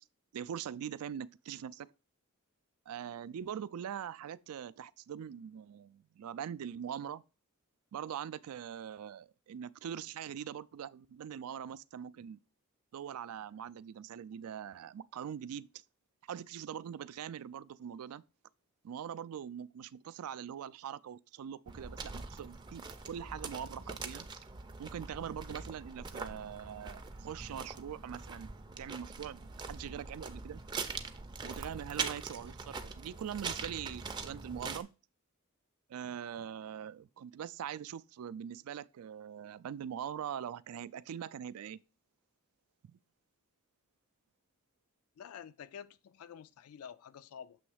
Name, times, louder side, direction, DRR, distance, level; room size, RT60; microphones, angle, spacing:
voice 1, 0.3-1.9 2.9-7.2 7.9-12.4 12.9-15.8 16.2-18.2 18.8-24.3 24.8-28.5 28.8-30.6 31.4-34.9 35.9-41.8 42.8-43.0, right 8 dB, 85° right, 0.3 m, -42 dB
sound 1, 21.7-34.8, right 4 dB, 20° right, 0.4 m, -43 dB
voice 2, 45.2-47.6, left 8 dB, 80° left, 0.4 m, -49 dB
6.9 x 3.1 x 4.8 m
head